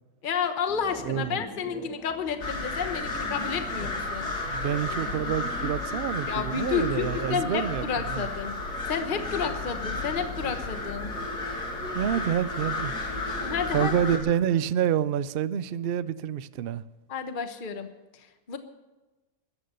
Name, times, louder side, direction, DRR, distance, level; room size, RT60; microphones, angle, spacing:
voice 1, 0.2-4.3 6.3-8.6 8.9-11.1 13.4-13.9 17.1-17.9 18.1-18.6, left 6 dB, 35° left, 1.2 m, -31 dB
sound 1, 0.7-13.9, equal, ahead, 2.7 m, -45 dB
voice 2, 1.0-1.4 4.5-8.3 11.9-12.9 13.7-16.8, right 9 dB, 70° right, 0.5 m, -28 dB
sound 2, 2.4-14.2, left 2 dB, 80° left, 3.3 m, -33 dB
14.0 x 12.0 x 6.9 m
omnidirectional pair, 1.7 m